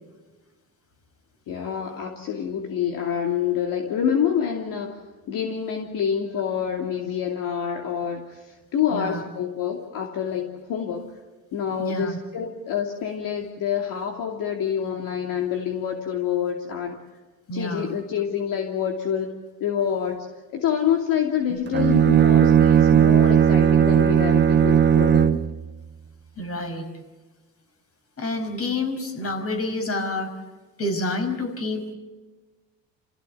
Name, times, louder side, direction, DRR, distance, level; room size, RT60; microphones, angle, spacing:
voice 1, 1.5-5.0 5.3-11.2 11.5-17.0 17.5-19.3 19.6-20.3 20.5-25.4, left 8 dB, 60° left, 2 dB, 2.7 m, -27 dB
voice 2, 8.9-9.2 11.8-12.2 17.5-17.9 21.5-21.6 26.4-26.9 28.2-30.3 30.8-31.9, left 2 dB, 40° left, 6 dB, 5.3 m, -28 dB
Bowed string instrument, 21.7-25.5, right 9 dB, 30° right, 1.0 m, -17 dB
29.0 x 16.0 x 8.3 m, 1.2 s
cardioid pair, 110°, 37 cm